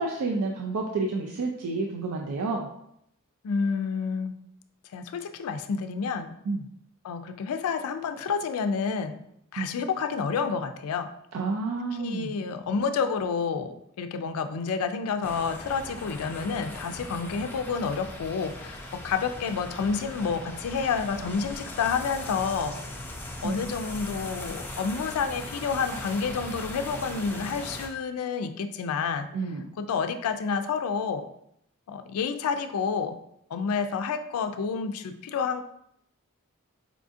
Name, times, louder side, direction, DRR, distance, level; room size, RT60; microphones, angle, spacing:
voice 1, 0.0-2.7 6.5-6.6 9.6-9.7 11.3-12.3 23.4-23.6 29.3-29.6, right 3 dB, 85° right, 0 dB, 0.4 m, -29 dB
voice 2, 3.4-4.4 4.9-6.3 7.0-9.2 9.5-11.1 12.0-22.8 23.4-29.3 29.8-31.3 31.9-33.2 33.5-35.6, left 5 dB, 85° left, 8 dB, 0.3 m, -29 dB
sound 1, 15.2-27.9, left 1 dB, 10° left, 0.3 m, -39 dB
4.8 x 2.4 x 2.6 m, 0.74 s
head